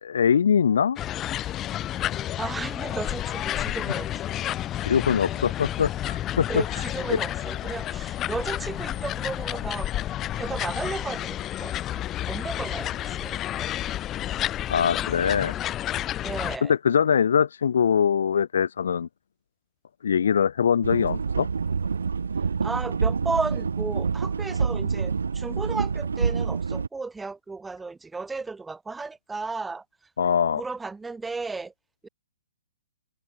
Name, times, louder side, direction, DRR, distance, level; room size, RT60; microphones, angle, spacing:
voice 1, 0.0-1.0 4.8-6.6 7.1-7.2 14.7-15.5 16.6-19.1 20.0-21.5 30.2-30.6, left 7 dB, 70° left, 0.6 m, -22 dB
sound 1, 1.0-16.6, left 12 dB, 20° left, 0.3 m, -30 dB
voice 2, 2.2-4.6 6.5-9.9 10.3-13.8 16.2-16.7 22.6-29.8 30.5-31.7 32.0-32.1, right 3 dB, 5° right, 2.4 m, -34 dB
sound 2, 20.8-26.9, right 5 dB, 80° right, 0.3 m, -27 dB
open air
hypercardioid pair, 140°, 0 cm